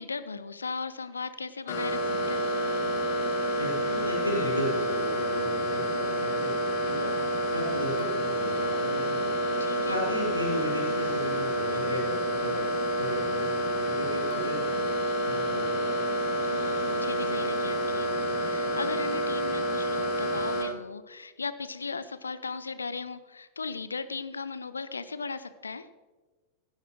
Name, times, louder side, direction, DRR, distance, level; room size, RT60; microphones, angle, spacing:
voice 1, 0.0-2.4 9.6-10.0 16.4-25.9, left 4 dB, 75° left, 14 dB, 0.6 m, -37 dB
sound 1, 1.7-20.6, right 1 dB, 50° left, 1.9 m, -28 dB
voice 2, 3.5-7.1 7.5-9.3 9.9-14.7 15.2-16.1, left 1 dB, 90° right, -3 dB, 3.7 m, -35 dB
16.0 x 11.0 x 3.1 m, 1.3 s
figure-of-eight pair, 90°, 0 cm